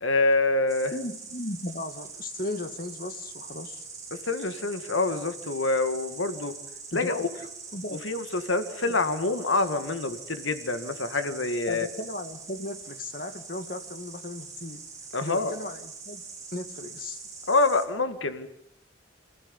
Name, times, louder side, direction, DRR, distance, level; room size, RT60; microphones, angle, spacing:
voice 1, 0.0-0.9 4.1-6.6 6.9-7.3 8.0-11.9 15.1-15.5 17.5-18.5, left 3 dB, 75° left, 10 dB, 1.8 m, -26 dB
Insect, 0.7-17.8, right 5 dB, 15° right, 4.3 m, -43 dB
voice 2, 0.9-3.8 6.9-8.0 8.8-9.0 11.7-14.8 15.2-16.2 16.5-17.2, left 2 dB, 45° left, 9 dB, 1.9 m, -36 dB
26.0 x 16.0 x 9.8 m, 0.72 s
head